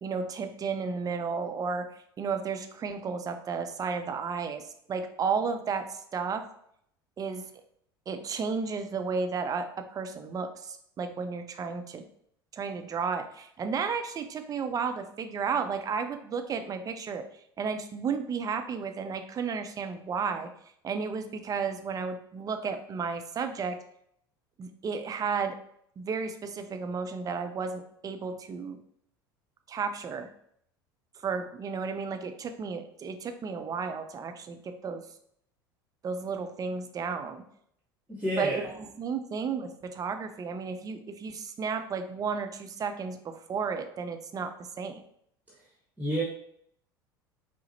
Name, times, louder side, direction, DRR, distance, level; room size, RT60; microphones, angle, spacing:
voice 1, 0.0-1.9 2.2-4.6 4.9-6.4 7.2-7.4 8.1-12.0 12.5-17.2 17.6-20.5 20.8-23.8 24.6-25.5 26.0-28.8 29.7-30.3 31.2-35.0 36.0-37.4 38.4-45.0, right 5 dB, 30° right, 7 dB, 0.5 m, -33 dB
voice 2, 38.1-38.7 46.0-46.2, right 1 dB, 15° right, -4 dB, 1.0 m, -29 dB
4.7 x 2.1 x 4.0 m, 0.69 s
hypercardioid pair, 75°, 12 cm